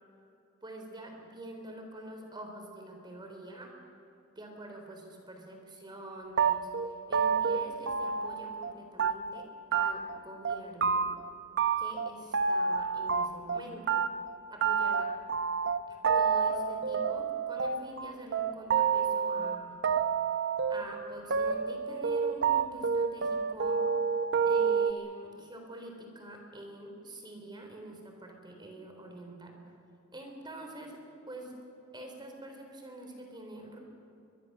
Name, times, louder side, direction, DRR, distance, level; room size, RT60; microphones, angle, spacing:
voice 1, 0.6-3.7 4.4-9.5 9.7-11.1 11.8-14.1 14.5-15.1 15.9-19.8 20.7-23.9 24.3-29.6 30.1-31.0 31.3-31.6 31.9-33.8, right 1 dB, 20° right, 2 dB, 3.4 m, -46 dB
sound 1, 6.4-8.7 9.0-9.4 9.7-10.2 10.4-11.3 11.6-13.6 13.9-24.9, right 6 dB, 55° right, 0.9 m, -28 dB
23.5 x 22.0 x 6.6 m, 2.8 s
head